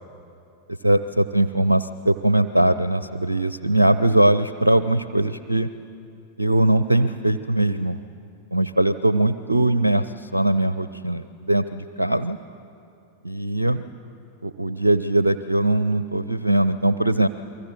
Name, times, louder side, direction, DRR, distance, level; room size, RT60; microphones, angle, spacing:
voice 1, 0.8-5.7 6.4-8.0 8.5-12.4 13.2-13.8 14.4-17.3, right 1 dB, 85° right, 12 dB, 0.6 m, -21 dB
29.5 x 23.5 x 7.2 m, 2.6 s
figure-of-eight pair, 90°, 0 cm